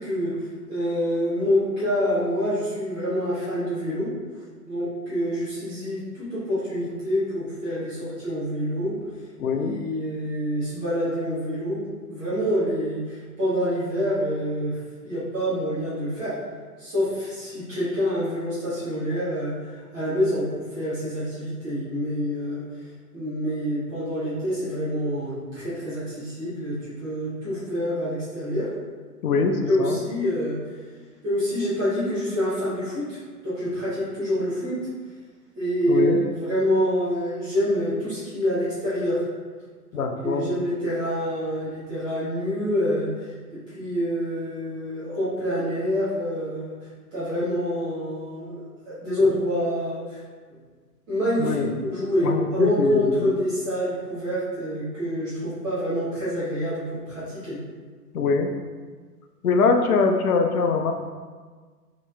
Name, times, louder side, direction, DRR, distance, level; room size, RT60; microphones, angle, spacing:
voice 1, 0.0-4.1 4.7-9.0 9.6-14.8 15.0-16.3 16.8-22.6 23.1-28.7 29.6-30.6 31.2-34.8 35.5-39.2 39.9-43.3 43.7-46.8 47.1-48.6 48.9-50.2 51.1-57.6, equal, 10° right, -12 dB, 0.4 m, -26 dB
voice 2, 9.4-9.8 29.2-30.0 35.9-36.2 39.9-40.5 51.4-51.7 52.2-53.3 58.1-58.5 59.4-60.9, left 4 dB, 70° left, 5 dB, 0.6 m, -23 dB
5.4 x 2.9 x 2.2 m, 1.5 s
figure-of-eight pair, 115°, 47 cm